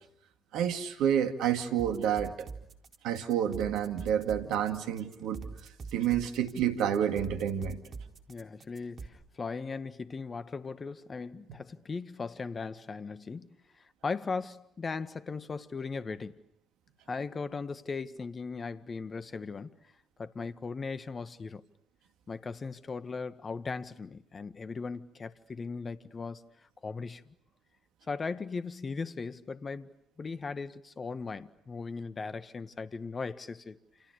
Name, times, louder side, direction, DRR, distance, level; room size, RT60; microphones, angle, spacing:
voice 1, 0.5-2.5 3.0-5.5 5.9-7.8, right 9 dB, 75° right, 2.3 m, -29 dB
sound 1, 1.8-9.1, right 4 dB, 55° right, 4.1 m, -43 dB
voice 2, 8.3-13.5 13.8-16.4 17.1-19.7 20.2-21.6 22.3-26.4 26.8-27.2 28.1-29.9 30.2-33.8, left 4 dB, 40° left, 1.6 m, -38 dB
29.5 x 29.0 x 6.8 m
hypercardioid pair, 50°, 0 cm